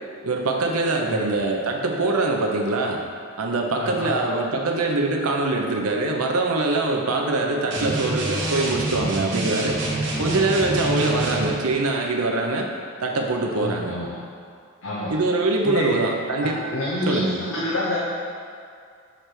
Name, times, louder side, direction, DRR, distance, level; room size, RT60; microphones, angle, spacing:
voice 1, 0.2-3.0 3.4-9.8 10.2-12.7 13.0-13.9 15.1-16.6 17.1-17.3, right 2 dB, 80° right, 2 dB, 0.7 m, -23 dB
voice 2, 3.7-4.2 7.1-7.2 11.0-11.1 13.5-14.2 14.8-15.1 15.6-16.0 16.4-18.0, left 1 dB, 60° left, -7 dB, 0.8 m, -28 dB
sound 1, 7.7-11.5, right 2 dB, 55° right, 0.9 m, -26 dB
6.4 x 3.3 x 4.5 m, 2.3 s
head